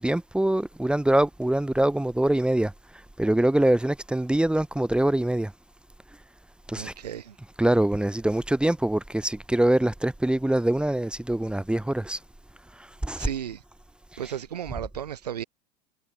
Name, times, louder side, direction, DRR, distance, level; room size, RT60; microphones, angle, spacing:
voice 1, 0.0-5.5 6.7-6.9 7.6-12.2 12.7-13.3 14.1-14.2, right 1 dB, 5° right, 1.4 m, -24 dB
voice 2, 6.7-7.4 13.2-13.6 14.2-15.4, right 9 dB, 75° right, 4.7 m, -34 dB
figure-of-eight pair, 75°, 21 cm